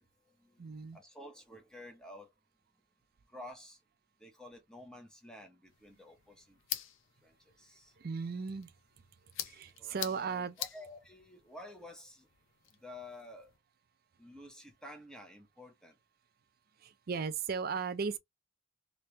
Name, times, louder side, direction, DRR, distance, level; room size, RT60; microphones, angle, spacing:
voice 1, 0.0-2.3 3.3-3.8 4.2-6.6 7.2-7.9 9.8-12.3 12.8-13.5 14.2-16.0, left 1 dB, 5° left, 0.9 m, -51 dB
voice 2, 0.6-1.0 8.0-8.7 9.5-10.6 16.8-18.2, right 5 dB, 50° right, 0.4 m, -36 dB
sound 1, 5.6-13.6, left 11 dB, 75° left, 0.6 m, -46 dB
3.2 x 2.9 x 3.2 m
head